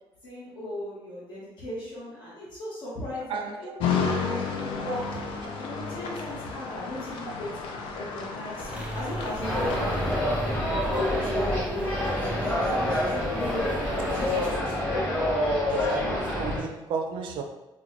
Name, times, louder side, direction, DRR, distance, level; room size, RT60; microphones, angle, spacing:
voice 1, 0.2-5.2 5.6-7.5 7.9-10.2 10.4-13.7 14.0-15.1, left 1 dB, 60° left, -7 dB, 1.0 m, -38 dB
voice 2, 3.3-3.8 4.8-4.9 14.0-14.2 15.7-17.4, right 4 dB, 70° right, 4 dB, 0.5 m, -33 dB
sound 1, 3.8-10.1, left 5 dB, 85° left, 0.5 m, -32 dB
sound 2, 8.6-14.6, right 1 dB, 10° right, 0.4 m, -37 dB
sound 3, 9.4-16.6, left 1 dB, 20° left, 1.1 m, -27 dB
4.5 x 2.2 x 2.6 m, 0.96 s
cardioid pair, 170°, 9 cm